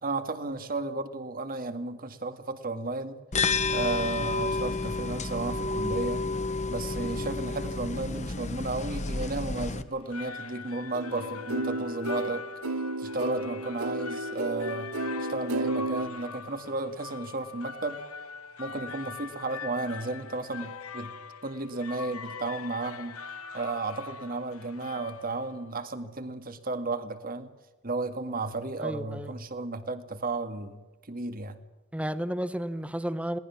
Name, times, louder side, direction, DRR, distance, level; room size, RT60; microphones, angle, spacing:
voice 1, 0.0-3.2 3.7-6.2 6.7-12.4 13.0-14.9 15.2-18.0 18.6-21.1 21.4-23.2 23.5-27.5 27.8-31.6, right 3 dB, 45° right, 9 dB, 2.0 m, -33 dB
sound 1, 3.3-9.8, left 3 dB, 35° left, 1.2 m, -30 dB
sound 2, 9.9-25.8, left 5 dB, 90° left, 1.3 m, -42 dB
sound 3, 10.9-16.1, right 2 dB, 90° right, 1.4 m, -33 dB
voice 2, 28.8-29.3 31.9-33.4, equal, 5° right, 13 dB, 1.0 m, -32 dB
22.0 x 18.5 x 7.3 m, 1.2 s
head